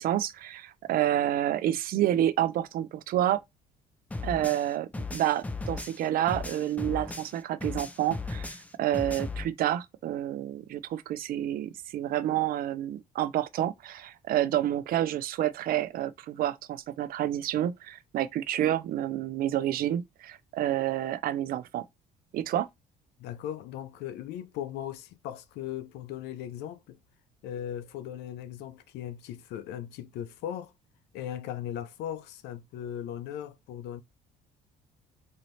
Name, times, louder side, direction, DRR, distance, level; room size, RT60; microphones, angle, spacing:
voice 1, 0.0-3.4 4.2-21.8 22.3-22.7, right 12 dB, 60° right, 0.4 m, -29 dB
sound 1, 4.1-7.4 7.6-9.4, left 3 dB, 10° left, 0.4 m, -36 dB
voice 2, 23.2-27.0 27.4-30.7 31.1-34.0, left 10 dB, 85° left, 0.5 m, -38 dB
4.0 x 2.7 x 3.1 m
cardioid pair, 110°, 17 cm